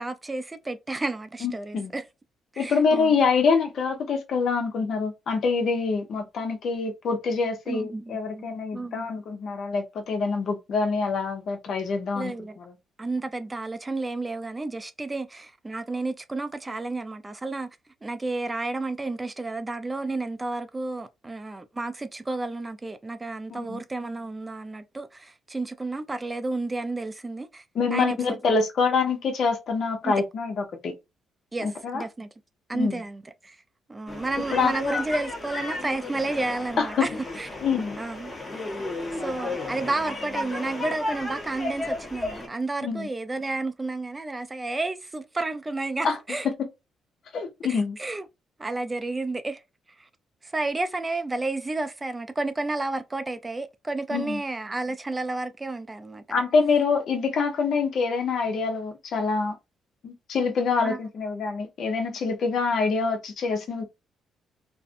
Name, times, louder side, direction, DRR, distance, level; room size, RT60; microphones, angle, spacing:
voice 1, 0.0-2.0 2.5-3.2 7.7-9.0 12.1-12.6 13.0-17.7 18.0-27.6 27.9-28.5 30.0-30.1 31.5-32.3 32.7-33.6 33.9-37.1 37.4-37.5 38.0-38.3 39.1-46.5 47.7-48.2 48.6-49.6 50.0-50.1 50.4-56.2 60.8-61.0, right 2 dB, 20° right, 0.3 m, -31 dB
voice 2, 1.4-1.9 2.6-12.7 23.5-23.8 27.7-30.9 31.6-32.0 32.7-33.0 34.5-34.7 36.8-37.0 37.6-38.0 42.8-43.1 46.0-46.2 47.3-48.0 54.1-54.4 56.3-59.5 60.0-63.8, left 5 dB, 65° left, 0.8 m, -25 dB
sound 1, 34.1-42.5, left 2 dB, 20° left, 1.1 m, -33 dB
2.5 x 2.1 x 2.5 m
cardioid pair, 90°, 0 cm